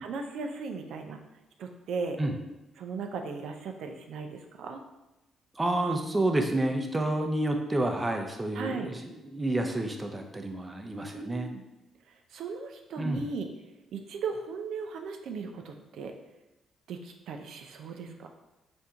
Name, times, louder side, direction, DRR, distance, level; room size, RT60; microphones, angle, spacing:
voice 1, 0.0-1.2 1.6-2.2 2.8-4.8 8.5-8.9 11.1-11.6 12.3-13.5 13.9-16.1 16.9-18.3, right 4 dB, 75° right, 4 dB, 0.4 m, -37 dB
voice 2, 5.5-11.5 13.0-13.3, right 1 dB, 20° right, 3 dB, 0.5 m, -29 dB
4.3 x 2.6 x 3.5 m, 0.98 s
cardioid pair, 90°, 0 cm